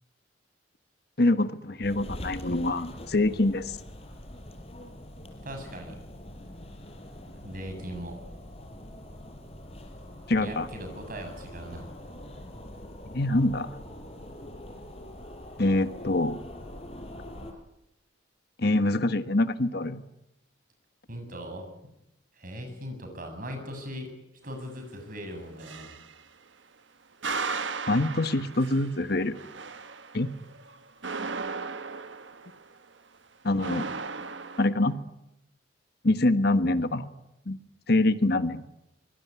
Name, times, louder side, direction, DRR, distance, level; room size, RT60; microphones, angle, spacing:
voice 1, 1.2-3.8 10.3-10.7 13.1-13.7 15.6-16.4 18.6-20.0 27.9-29.4 30.1-30.3 33.4-33.9 34.6-35.0 36.0-37.1 37.5-37.6 37.9-38.6, left 2 dB, 55° left, 11 dB, 1.4 m, -25 dB
sound 1, 1.8-17.5, left 1 dB, 30° left, 5.1 m, -43 dB
voice 2, 5.4-6.0 7.4-8.2 10.4-11.9 21.1-21.9 22.4-24.1 24.4-25.9, equal, 45° right, 5 dB, 7.7 m, -39 dB
sound 2, 25.1-26.2 27.2-32.7 33.6-34.7, right 4 dB, 80° right, 1.6 m, -36 dB
24.5 x 22.0 x 9.7 m, 0.86 s
head